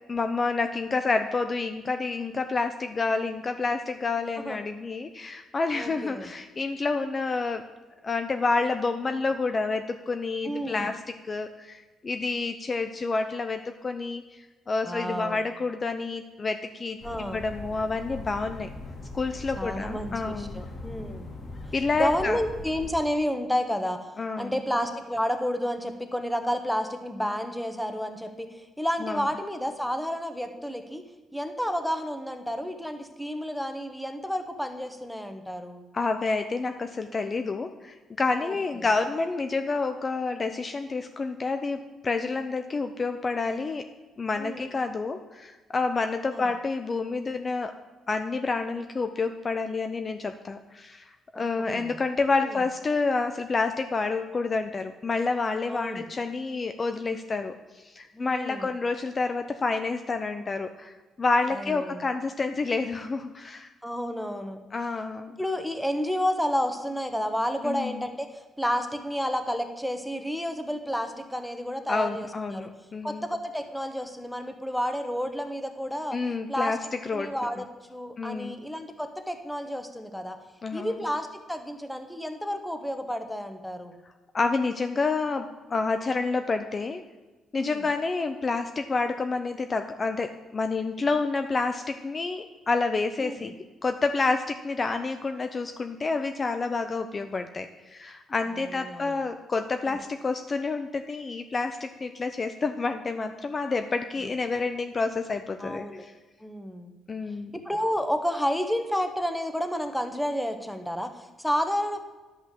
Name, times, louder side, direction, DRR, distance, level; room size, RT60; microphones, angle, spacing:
voice 1, 0.1-7.7 8.0-18.7 19.1-20.6 21.7-22.4 24.2-24.5 29.0-29.2 35.9-43.8 44.2-47.7 48.1-63.7 64.7-65.4 67.6-68.0 71.9-73.3 76.1-77.3 78.2-78.6 80.6-81.1 84.3-87.0 87.5-93.5 93.8-106.1 107.1-107.5, left 3 dB, 35° left, 7 dB, 0.6 m, -29 dB
voice 2, 5.7-6.3 10.4-10.9 14.8-15.4 17.0-17.4 19.6-21.3 22.0-24.1 24.4-31.0 31.3-35.8 38.3-38.9 44.4-44.7 46.3-46.5 51.7-52.0 52.4-52.6 55.7-56.0 58.1-58.7 61.5-62.1 63.8-64.6 65.4-72.7 73.0-76.2 76.5-76.8 77.1-80.4 80.7-83.9 87.6-87.8 93.2-93.5 98.6-99.2 99.9-100.0 105.6-106.0 106.4-106.9 107.5-112.0, equal, 5° left, 7 dB, 1.3 m, -31 dB
sound 1, 17.0-22.9, left 2 dB, 50° left, 2.7 m, -40 dB
11.0 x 5.4 x 7.6 m, 1.2 s
cardioid pair, 90°, 0 cm